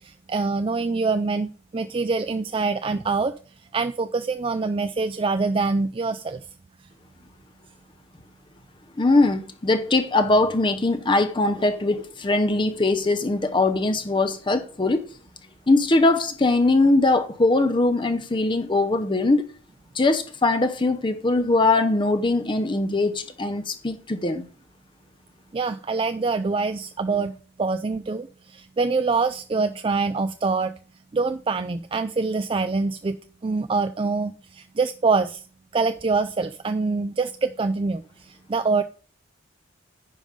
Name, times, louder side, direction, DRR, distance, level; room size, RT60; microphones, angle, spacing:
voice 1, 0.0-3.3 3.7-6.4 25.5-27.3 27.6-30.7 31.1-33.2 33.4-35.4 35.7-38.8, right 4 dB, 25° right, 0.4 m, -25 dB
voice 2, 9.0-15.1 15.7-19.5 19.9-24.5, left 2 dB, 25° left, 0.6 m, -21 dB
10.5 x 5.1 x 5.2 m
head